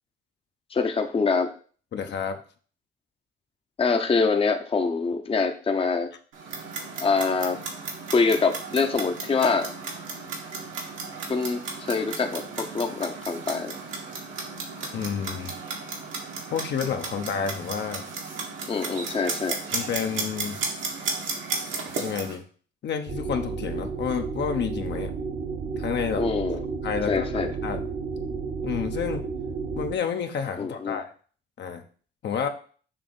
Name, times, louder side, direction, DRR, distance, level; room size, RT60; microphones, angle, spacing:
voice 1, 0.7-1.5 3.8-6.1 7.0-7.6 8.1-9.7 11.3-13.7 18.7-19.6 26.2-26.6 27.1-27.5 30.6-31.0, left 4 dB, 30° left, 5 dB, 0.8 m, -25 dB
voice 2, 1.9-2.4 14.9-15.5 16.5-18.0 19.7-20.6 22.0-22.4 22.8-25.1 25.8-26.2 26.8-27.9 28.6-29.3 29.8-31.1 31.6-31.8 32.2-32.5, left 7 dB, 60° left, 5 dB, 0.9 m, -29 dB
Clock, 6.3-22.4, right 4 dB, 80° right, 1.8 m, -34 dB
sound 1, 23.1-29.9, right 5 dB, 45° right, 1.1 m, -32 dB
7.1 x 3.0 x 5.4 m, 0.42 s
cardioid pair, 90°, 20 cm